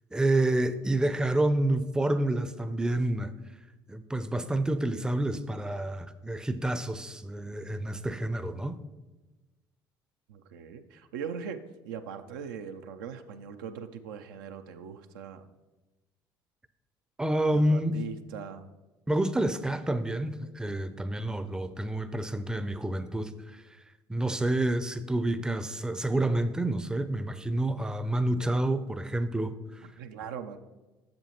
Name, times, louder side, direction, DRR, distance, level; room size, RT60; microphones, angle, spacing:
voice 1, 0.1-3.3 3.9-8.8 17.2-18.0 19.1-23.6 24.1-29.9, right 1 dB, 5° right, 0.5 m, -28 dB
voice 2, 10.3-15.5 17.5-18.7 29.8-30.6, right 7 dB, 75° right, 0.4 m, -40 dB
7.7 x 6.7 x 2.9 m
figure-of-eight pair, 55°, 11 cm